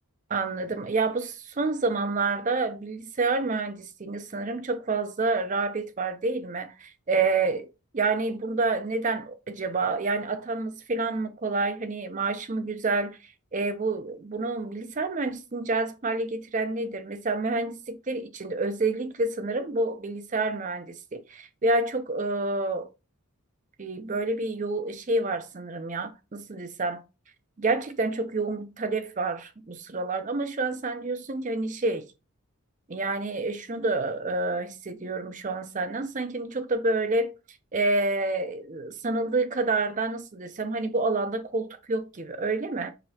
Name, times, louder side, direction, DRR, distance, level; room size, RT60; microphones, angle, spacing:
voice 1, 0.3-7.7 7.9-22.9 23.8-27.0 27.6-32.1 32.9-37.4 37.7-42.9, right 3 dB, 35° right, 0.5 m, -28 dB
4.9 x 3.2 x 2.8 m
head